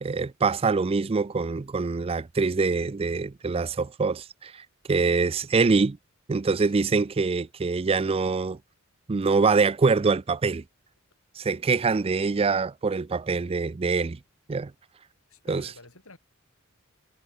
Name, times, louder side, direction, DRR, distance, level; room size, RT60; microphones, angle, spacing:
voice 1, 0.0-6.0 6.3-8.6 9.1-10.6 11.4-14.2 14.5-14.7 15.5-15.7, right 4 dB, 25° right, 0.4 m, -24 dB
voice 2, 6.6-7.0 15.3-16.2, left 2 dB, 75° left, 7.1 m, -51 dB
head